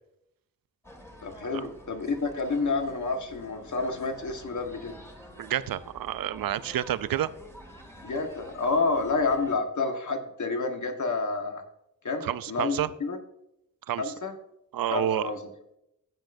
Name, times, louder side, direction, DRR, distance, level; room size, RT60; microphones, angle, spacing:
sound 1, 0.8-9.6, equal, 10° left, 2.0 m, -49 dB
voice 1, 1.2-5.0 8.0-11.6 12.0-13.2 14.0-14.3 14.9-15.4, left 3 dB, 60° left, 4 dB, 1.4 m, -29 dB
voice 2, 5.4-7.3 12.2-12.9 13.9-14.1 14.7-15.3, right 11 dB, 85° right, 16 dB, 0.5 m, -29 dB
15.0 x 7.8 x 2.6 m, 0.82 s
wide cardioid pair, 90°, 33 cm